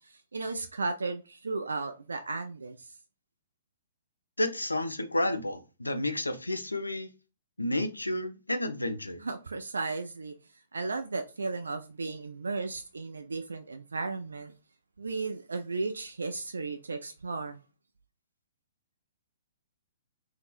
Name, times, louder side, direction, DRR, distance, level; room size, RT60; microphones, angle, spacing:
voice 1, 0.0-2.9 9.2-10.3 10.7-14.5 15.0-17.6, right 3 dB, 70° right, 0.3 m, -35 dB
voice 2, 4.4-7.1 7.6-9.2, left 1 dB, 85° left, 0.5 m, -31 dB
3.5 x 2.8 x 2.4 m
figure-of-eight pair, 115°, 0 cm